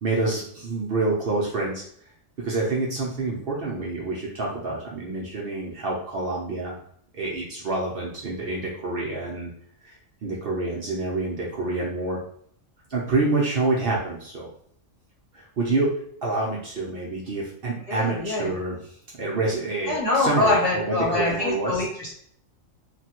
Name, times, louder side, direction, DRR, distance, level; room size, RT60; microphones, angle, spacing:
voice 1, 0.0-1.8 2.4-6.8 7.1-9.5 10.2-12.2 12.9-14.5 15.3-15.9 16.2-18.8 19.2-21.8, right 2 dB, 55° right, -4 dB, 0.7 m, -27 dB
voice 2, 17.9-18.5 19.9-22.1, left 2 dB, 30° left, -6 dB, 0.9 m, -24 dB
3.2 x 2.2 x 2.8 m, 0.64 s
omnidirectional pair, 1.3 m